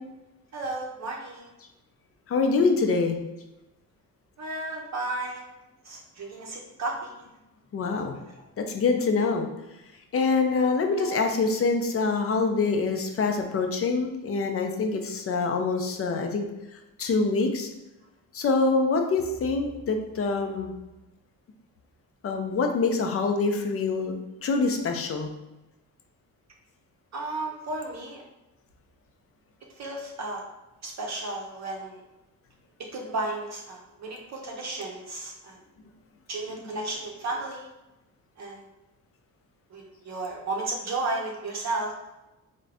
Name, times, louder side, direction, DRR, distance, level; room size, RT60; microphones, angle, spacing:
voice 1, 0.5-1.5 4.4-5.5 5.8-7.3 11.0-11.2 27.1-28.2 29.8-30.4 30.8-32.0 32.9-35.6 36.3-37.7 38.4-38.7 39.7-41.9, right 2 dB, 50° right, -1 dB, 0.6 m, -33 dB
voice 2, 2.3-3.2 7.7-8.2 8.6-9.5 10.1-16.5 17.0-17.7 18.3-20.7 22.2-25.3, left 4 dB, 40° left, 4 dB, 0.5 m, -25 dB
3.7 x 2.6 x 3.3 m, 0.99 s
cardioid pair, 130°, 34 cm